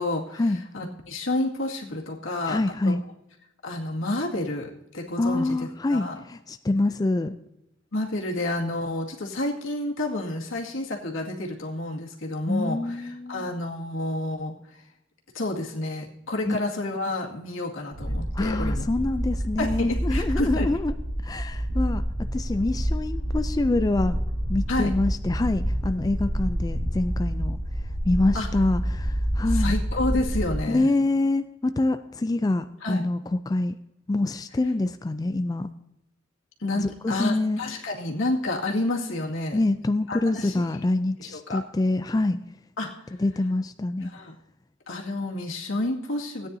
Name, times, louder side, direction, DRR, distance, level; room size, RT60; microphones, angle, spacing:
voice 1, 0.0-0.4 0.7-2.6 2.8-3.0 3.6-6.2 7.9-14.8 15.3-18.8 19.6-20.7 24.7-24.9 28.3-28.5 29.5-30.9 32.8-33.1 36.6-39.6 40.1-40.6 41.2-41.6 42.8-43.1 44.0-44.4 44.9-46.5, left 2 dB, 90° left, -1 dB, 2.1 m, -30 dB
voice 2, 2.4-3.0 5.2-7.3 12.5-13.5 16.4-16.6 18.3-20.9 21.2-22.0 22.3-24.2 24.5-29.8 30.7-33.8 34.1-35.7 36.8-37.6 39.5-42.4 43.2-44.1, left 2 dB, 20° left, 10 dB, 0.3 m, -26 dB
sound 1, 17.9-30.6, equal, 85° right, 4.0 m, -28 dB
17.0 x 9.5 x 2.7 m, 0.86 s
head